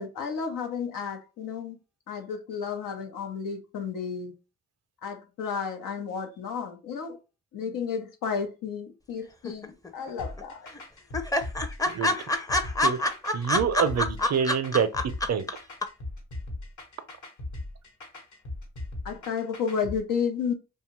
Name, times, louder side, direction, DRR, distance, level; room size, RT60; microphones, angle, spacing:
voice 1, 0.0-1.8 2.1-4.3 5.0-7.2 7.5-10.7 19.0-20.5, left 6 dB, 85° left, 0.7 m, -32 dB
sound 1, 9.4-10.1 10.4-10.5 10.7-10.8 11.1-15.5 15.8-15.9, left 1 dB, 10° left, 0.5 m, -26 dB
sound 2, 10.2-20.0, left 2 dB, 65° left, 1.2 m, -39 dB
voice 2, 13.3-14.9 15.3-15.4, right 7 dB, 55° right, 0.5 m, -26 dB
2.6 x 2.3 x 3.0 m
supercardioid pair, 50°, 32 cm